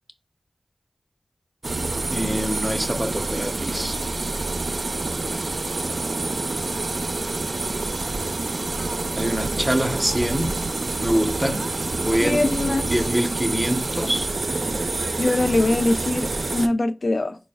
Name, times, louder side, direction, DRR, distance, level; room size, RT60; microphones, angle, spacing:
sound 1, 1.6-16.7, right 2 dB, 70° right, 0.4 m, -27 dB
voice 1, 2.1-4.0 9.2-10.6 11.0-11.7 12.0-14.3, equal, 10° right, 0.7 m, -25 dB
voice 2, 12.2-12.9 15.2-17.4, left 2 dB, 70° left, 0.4 m, -22 dB
4.4 x 2.1 x 3.3 m
cardioid pair, 40°, 0 cm